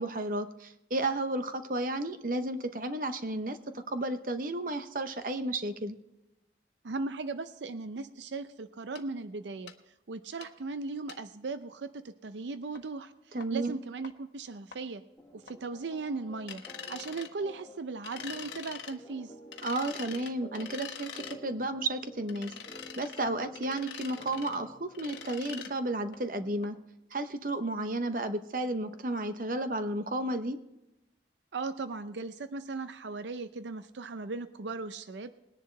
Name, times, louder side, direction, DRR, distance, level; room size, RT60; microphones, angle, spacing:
voice 1, 0.0-3.6 3.9-6.0 13.3-13.8 19.6-22.5 23.0-26.8 27.1-30.6, right 2 dB, 50° right, 9 dB, 0.8 m, -32 dB
voice 2, 6.8-9.7 10.1-15.0 15.3-16.6 16.9-19.3 31.5-35.3, right 3 dB, 85° right, 11 dB, 0.5 m, -38 dB
sound 1, 9.0-9.1 9.7-9.8 10.4-10.5 11.1-11.2 12.8-12.9 13.4-13.5 14.0-14.1 14.7-14.8 15.5-15.6 16.5-17.3 18.0-19.0 19.5-21.4 22.3-23.3 23.6-24.6 24.9-25.7 26.1-26.2 26.6-26.7 27.1-27.2, left 7 dB, 90° left, 1.1 m, -44 dB
sound 2, 15.2-26.9, equal, 10° left, 1.5 m, -52 dB
20.5 x 10.5 x 3.3 m, 0.93 s
head